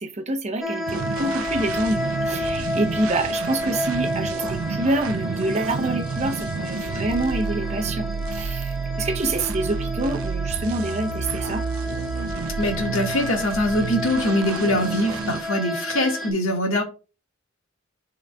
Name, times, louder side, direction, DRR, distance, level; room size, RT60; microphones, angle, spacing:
voice 1, 0.0-11.6, right 2 dB, 30° right, 0.7 m, -27 dB
sound 1, 0.6-16.3, left 1 dB, ahead, 0.9 m, -31 dB
sound 2, 0.9-15.4, right 5 dB, 90° right, 0.4 m, -30 dB
voice 2, 12.6-16.8, left 1 dB, 80° left, 1.7 m, -23 dB
10.5 x 3.9 x 2.3 m
head